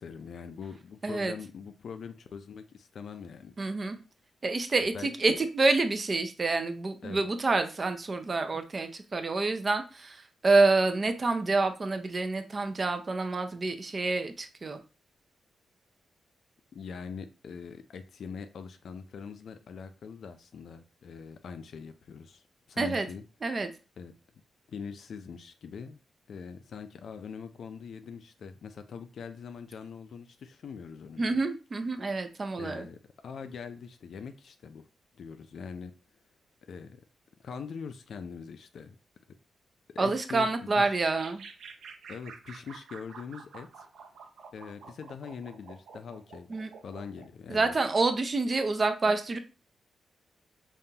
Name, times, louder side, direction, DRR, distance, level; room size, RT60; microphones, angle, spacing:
voice 1, 0.0-3.5 4.9-5.4 7.0-7.3 16.7-23.2 24.0-24.1 24.7-26.0 26.3-31.4 32.6-34.9 35.1-35.9 36.7-37.0 37.4-39.0 39.9-40.5 40.7-41.0 42.1-43.9 44.5-46.5 46.8-47.8, left 6 dB, 60° left, 0.4 m, -43 dB
voice 2, 1.0-1.3 3.6-4.0 4.4-14.8 22.8-23.1 23.4-23.7 31.2-32.9 40.0-41.4 46.5-46.7 47.5-49.4, right 3 dB, 30° right, 0.4 m, -27 dB
sound 1, 41.0-47.3, right 5 dB, 75° right, 0.6 m, -48 dB
5.3 x 2.3 x 2.8 m
wide cardioid pair, 165°, 0 cm